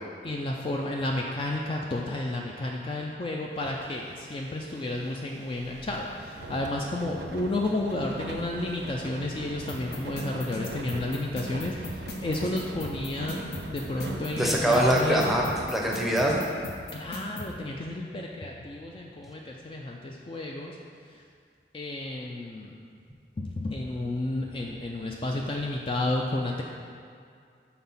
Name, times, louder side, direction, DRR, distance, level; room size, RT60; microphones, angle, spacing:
voice 1, 0.2-13.4 13.7-15.2 16.9-20.8 21.7-22.8 23.4-26.6, left 2 dB, 30° left, -1 dB, 0.4 m, -31 dB
sound 1, 3.6-15.7, right 2 dB, 75° right, 0.5 m, -41 dB
sound 2, 9.7-17.5, left 2 dB, 65° left, 0.8 m, -38 dB
voice 2, 14.1-16.4, equal, ahead, -2 dB, 0.7 m, -24 dB
5.9 x 4.2 x 5.5 m, 2.3 s
head